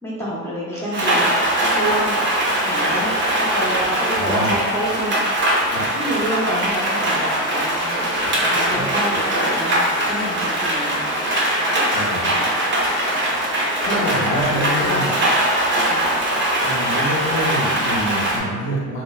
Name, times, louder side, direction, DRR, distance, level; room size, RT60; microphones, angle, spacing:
voice 1, 0.0-2.2 2.6-5.2 5.9-8.0 8.4-11.1 13.7-15.3 15.8-16.1, equal, 10° left, -8 dB, 0.8 m, -28 dB
Rain, 0.9-18.4, right 1 dB, 35° right, 0.6 m, -21 dB
voice 2, 4.2-4.5 5.7-5.9 8.2-8.5 8.7-8.8 11.9-12.3 12.8-13.2 13.8-15.1 16.6-19.0, equal, 60° left, -3 dB, 0.7 m, -26 dB
3.1 x 2.0 x 2.3 m, 1.4 s
cardioid pair, 130°, 32 cm